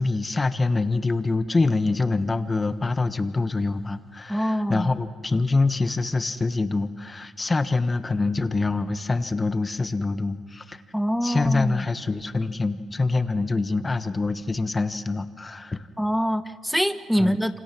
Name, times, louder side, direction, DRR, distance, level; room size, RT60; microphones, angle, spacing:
voice 1, 0.0-10.8 11.2-15.9 17.2-17.4, left 3 dB, 25° left, 10 dB, 1.3 m, -25 dB
voice 2, 4.3-4.9 10.9-11.9 16.0-17.6, equal, ahead, 11 dB, 1.2 m, -24 dB
27.5 x 26.0 x 6.2 m, 1.4 s
cardioid pair, 90°, 0 cm